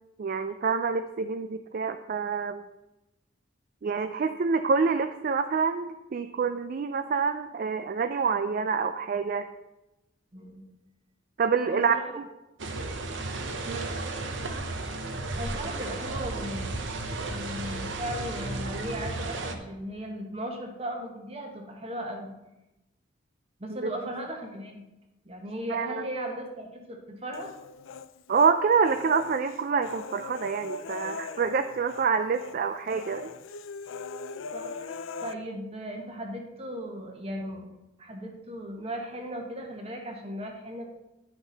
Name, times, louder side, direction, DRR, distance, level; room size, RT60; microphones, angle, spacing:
voice 1, 0.2-2.6 3.8-9.5 11.4-11.9 13.7-13.9 23.7-23.9 25.7-26.0 28.3-33.3, right 5 dB, 45° right, 9 dB, 0.3 m, -27 dB
voice 2, 10.3-10.6 11.6-12.0 15.4-16.7 17.3-22.3 23.6-24.8 25.2-27.5 34.5-37.7 38.0-40.8, equal, 30° right, 2 dB, 1.3 m, -37 dB
sound 1, 12.6-19.5, right 2 dB, 70° right, 0.8 m, -34 dB
Human voice, 27.3-28.5 28.9-32.1 32.3-32.6 32.9-35.3, left 4 dB, 80° left, 0.4 m, -40 dB
10.0 x 5.9 x 4.0 m, 0.98 s
head